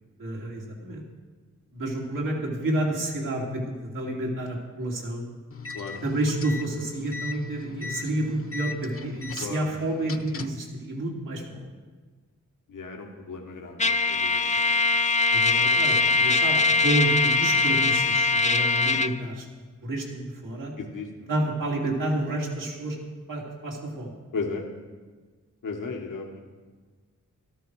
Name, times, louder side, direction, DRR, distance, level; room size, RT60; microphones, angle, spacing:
voice 1, 0.2-1.0 1.7-5.3 6.0-11.6 15.3-19.5 19.8-20.7 21.3-23.0 23.3-24.1, right 1 dB, 85° right, -2 dB, 2.7 m, -29 dB
sound 1, 5.5-10.7, left 4 dB, 45° left, 0.9 m, -38 dB
voice 2, 12.7-14.4 20.8-21.3 24.3-24.6 25.6-26.4, left 4 dB, 85° left, 2 dB, 1.4 m, -35 dB
Trumpet, 13.8-19.1, left 3 dB, 25° left, 0.6 m, -22 dB
13.0 x 13.0 x 4.7 m, 1.4 s
cardioid pair, 55°, 31 cm